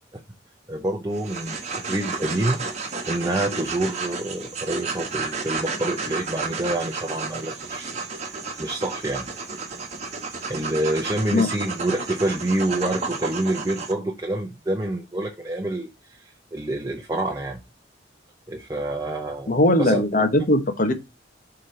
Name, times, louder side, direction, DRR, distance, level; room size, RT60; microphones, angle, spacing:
voice 1, 0.7-2.6 3.1-7.9 8.6-9.3 10.5-15.9 16.2-17.6 18.5-20.0, right 1 dB, 20° right, 0.7 m, -27 dB
sound 1, 1.1-13.9, right 4 dB, 40° right, 1.1 m, -32 dB
voice 2, 19.5-20.9, left 1 dB, 45° left, 1.0 m, -19 dB
4.8 x 3.9 x 5.4 m
head